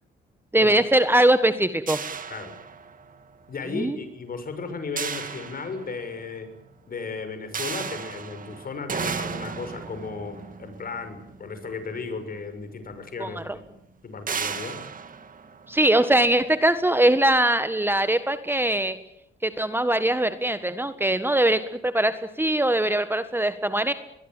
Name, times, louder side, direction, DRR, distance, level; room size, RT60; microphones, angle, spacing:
voice 1, 0.5-2.0 3.7-3.9 13.2-13.6 15.7-19.0 19.4-23.9, right 1 dB, 10° right, 11 dB, 1.6 m, -21 dB
Harsh Metal Clang, 1.9-3.2 5.0-6.3 7.5-12.0 12.9-13.0 13.4-13.6 14.3-16.3, right 6 dB, 45° right, 2.3 m, -34 dB
voice 2, 3.5-6.5 6.9-13.5 14.0-14.8, left 4 dB, 45° left, 9 dB, 6.3 m, -35 dB
23.0 x 21.0 x 9.1 m, 0.82 s
cardioid pair, 90°, 20 cm